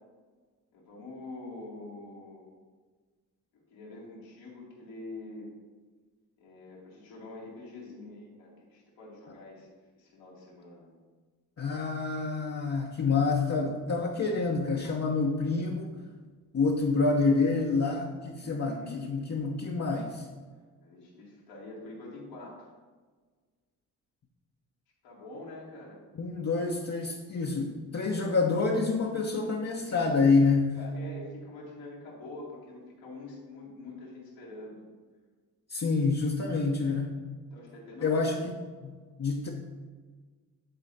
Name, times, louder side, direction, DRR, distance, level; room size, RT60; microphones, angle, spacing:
voice 1, 0.7-2.5 3.7-5.5 6.4-10.9 18.4-19.1 20.8-22.7 25.0-26.0 30.8-34.8 37.5-38.4, left 2 dB, 80° left, -5 dB, 2.2 m, -45 dB
voice 2, 11.6-15.9 16.5-20.3 26.1-30.8 35.7-37.2 38.0-38.6 38.8-39.5, left 4 dB, 35° left, -1 dB, 1.0 m, -27 dB
10.5 x 4.2 x 4.0 m, 1.5 s
hypercardioid pair, 45°, 45 cm